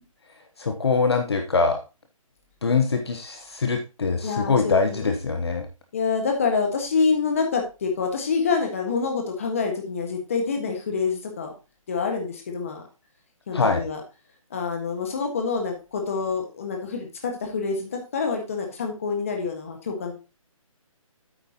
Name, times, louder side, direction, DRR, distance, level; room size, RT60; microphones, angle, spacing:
voice 1, 0.6-1.8 2.6-5.7 13.5-13.8, left 4 dB, 45° left, 5 dB, 1.0 m, -23 dB
voice 2, 4.2-5.1 5.9-11.5 11.9-12.8 13.5-14.0 14.5-20.1, left 5 dB, 25° left, 3 dB, 1.5 m, -26 dB
8.9 x 8.8 x 2.9 m, 0.29 s
hypercardioid pair, 180°, 18 cm